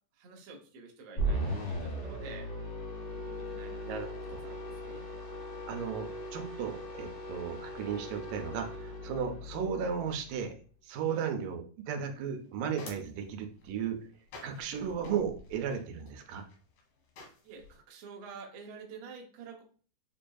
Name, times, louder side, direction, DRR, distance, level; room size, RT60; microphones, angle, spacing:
voice 1, 0.1-2.5 3.1-5.1 11.0-11.3 17.4-19.6, right 4 dB, 70° right, 1 dB, 1.5 m, -49 dB
sound 1, 1.2-10.5, right 1 dB, 70° left, 0.6 m, -38 dB
voice 2, 3.9-4.4 5.7-10.5 10.8-14.0 14.4-16.5, right 7 dB, 90° right, 5 dB, 2.3 m, -35 dB
sound 2, 12.1-17.8, left 3 dB, 90° left, 3.0 m, -53 dB
6.9 x 2.6 x 2.3 m, 0.42 s
omnidirectional pair, 3.6 m